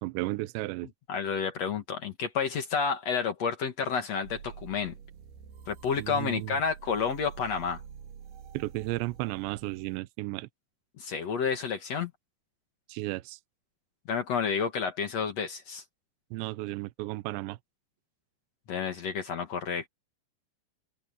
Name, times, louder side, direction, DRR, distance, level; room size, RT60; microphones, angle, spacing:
voice 1, 0.0-0.9 6.0-6.6 8.5-10.5 12.9-13.4 16.3-17.6, right 19 dB, 80° right, 2.8 m, -34 dB
voice 2, 1.1-4.9 5.7-7.8 11.0-12.1 14.1-15.8 18.7-19.9, left 6 dB, 65° left, 1.7 m, -30 dB
sound 1, 4.2-10.0, right 7 dB, 60° right, 4.0 m, -48 dB
omnidirectional pair, 5.6 m